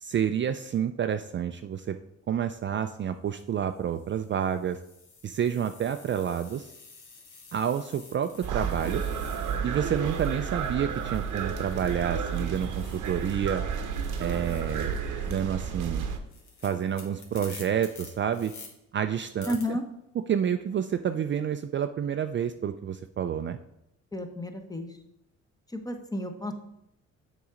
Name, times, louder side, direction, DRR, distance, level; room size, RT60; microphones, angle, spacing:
voice 1, 0.0-2.0 2.3-4.8 5.2-6.7 7.5-9.0 9.6-13.6 14.2-15.0 15.3-16.0 16.6-18.5 18.9-19.8 20.3-23.6, right 8 dB, 40° right, 9 dB, 0.4 m, -29 dB
sound 1, 2.3-2.6 3.3-13.5 13.8-18.7 19.4-19.6, left 4 dB, 70° left, 1.8 m, -51 dB
sound 2, 8.4-16.2, right 6 dB, 80° right, 0.9 m, -32 dB
voice 2, 19.5-19.8 24.1-25.0 25.7-26.5, left 1 dB, 10° left, 6 dB, 1.0 m, -32 dB
7.0 x 3.8 x 5.0 m, 0.81 s
cardioid pair, 90°, 30 cm